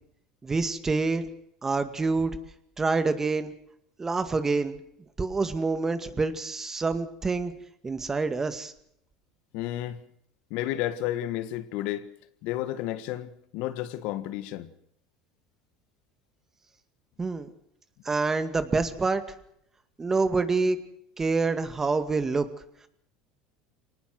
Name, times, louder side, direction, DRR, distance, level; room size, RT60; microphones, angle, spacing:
voice 1, 0.4-1.2 1.6-2.4 2.8-3.5 4.0-4.8 5.2-7.5 7.8-8.7 17.2-17.5 18.0-19.2 20.0-20.8 21.2-22.5, right 3 dB, 20° right, 2.2 m, -26 dB
voice 2, 9.5-10.0 10.5-12.1 12.4-14.7, left 13 dB, 70° left, 1.5 m, -32 dB
24.5 x 19.0 x 6.1 m
supercardioid pair, 90°, 2 cm